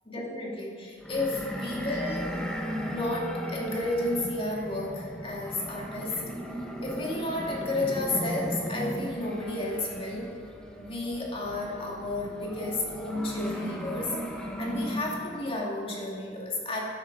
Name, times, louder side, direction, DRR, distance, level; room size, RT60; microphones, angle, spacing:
voice 1, 0.1-2.3 2.8-6.3 6.8-10.3 10.8-16.8, left 2 dB, 30° left, -3 dB, 2.3 m, -32 dB
sound 1, 1.0-15.5, equal, 5° left, 1.0 m, -36 dB
13.0 x 8.7 x 5.4 m, 2.2 s
head